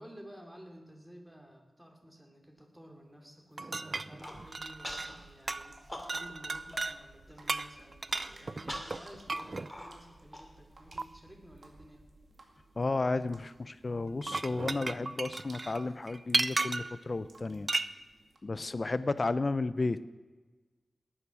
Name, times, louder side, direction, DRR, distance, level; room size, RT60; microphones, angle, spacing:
voice 1, 0.0-12.0, equal, 10° right, 2 dB, 2.8 m, -53 dB
sound 1, 3.6-5.2 5.5-5.8 6.1-7.0 7.5-9.7 11.0-11.1 14.1-17.0 17.7-17.9, right 3 dB, 45° right, 0.5 m, -34 dB
Human voice, 4.1-4.4 4.8-5.2 5.5-6.4 6.7-6.8 7.2-7.6 8.1-11.0, left 1 dB, 10° left, 2.8 m, -44 dB
sound 2, 4.2-18.4, right 2 dB, 75° right, 2.2 m, -59 dB
voice 2, 12.8-17.7 18.4-20.1, left 3 dB, 45° left, 14 dB, 0.7 m, -33 dB
18.5 x 10.0 x 6.3 m, 1.3 s
wide cardioid pair, 75°, 0 cm